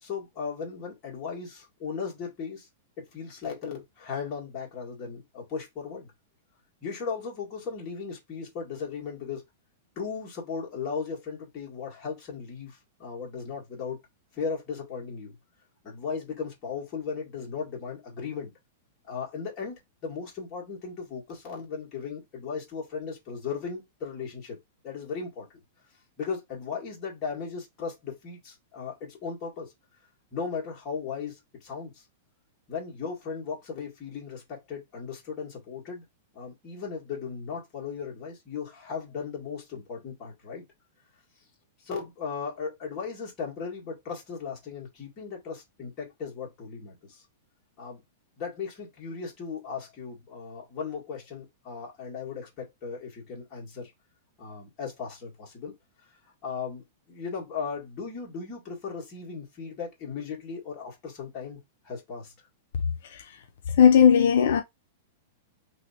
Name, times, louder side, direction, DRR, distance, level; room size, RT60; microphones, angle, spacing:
voice 1, 0.0-2.7 3.0-6.1 6.8-9.4 10.0-14.0 14.3-15.3 15.8-18.5 19.1-19.7 20.0-24.6 24.8-25.5 26.2-29.7 30.3-32.0 32.7-36.0 36.3-40.6 41.8-47.2 47.8-48.0 48.4-53.9 54.4-55.7 56.4-61.6 61.8-62.3, left 5 dB, 25° left, 1.8 m, -36 dB
voice 2, 63.0-63.4 63.7-64.6, left 8 dB, 70° left, 0.5 m, -18 dB
3.1 x 3.0 x 2.7 m
supercardioid pair, 150°, 0 cm